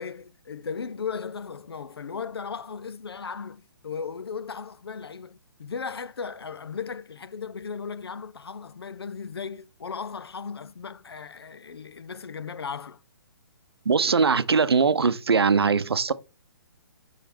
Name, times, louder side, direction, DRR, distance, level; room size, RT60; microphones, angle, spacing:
voice 1, 0.0-13.0, left 6 dB, 85° left, 0.5 m, -36 dB
voice 2, 13.8-16.1, right 5 dB, 85° right, 0.6 m, -21 dB
5.1 x 5.0 x 4.3 m
hypercardioid pair, 140°, 13 cm